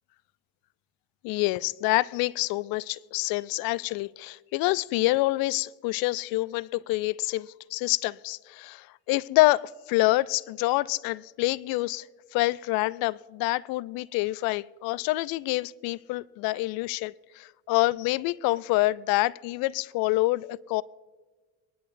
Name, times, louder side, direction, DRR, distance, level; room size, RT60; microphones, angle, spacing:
voice 1, 1.2-12.1 12.3-20.8, left 19 dB, 65° left, 0.5 m, -27 dB
23.5 x 11.0 x 2.6 m
hypercardioid pair, 55°, 39 cm